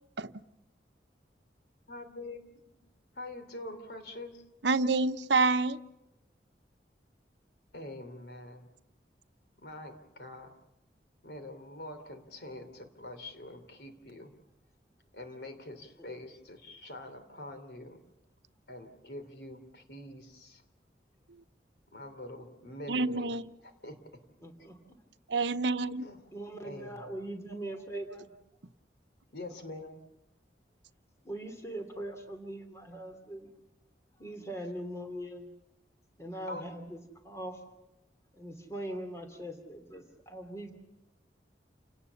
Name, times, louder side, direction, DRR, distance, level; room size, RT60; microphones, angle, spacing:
voice 1, 1.9-2.4 3.2-4.4 7.7-8.7 9.6-10.5 11.2-14.3 15.1-18.0 18.7-20.6 21.9-23.3 23.6-24.0 26.0-26.2 26.6-27.0 29.3-30.0 36.5-36.7, left 1 dB, 70° left, 8 dB, 3.2 m, -44 dB
voice 2, 4.6-5.8 22.9-23.4 25.3-26.1, right 3 dB, 90° right, 11 dB, 0.8 m, -27 dB
voice 3, 24.4-24.8 26.3-28.3 31.2-33.5 34.2-35.5 36.2-37.6 38.3-40.7, right 1 dB, 15° left, 5 dB, 2.8 m, -41 dB
29.5 x 18.5 x 7.1 m, 0.93 s
head